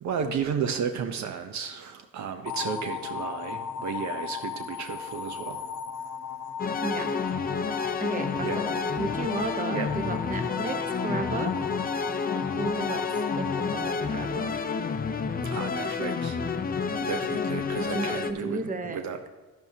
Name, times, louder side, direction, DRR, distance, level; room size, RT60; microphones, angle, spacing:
voice 1, 0.0-5.6 8.4-8.6 9.7-9.9 15.4-16.4 17.0-19.2, right 7 dB, 65° right, 7 dB, 0.7 m, -33 dB
sound 1, 2.5-14.6, left 7 dB, 70° left, 0.8 m, -37 dB
sound 2, 6.6-18.3, left 5 dB, 30° left, 0.6 m, -29 dB
voice 2, 6.8-7.2 8.0-10.8 11.0-11.6 12.5-13.0 13.4-14.5 17.9-19.0, right 2 dB, 25° right, 7 dB, 1.0 m, -33 dB
11.0 x 10.5 x 2.8 m, 1.3 s
cardioid pair, 90°, 30 cm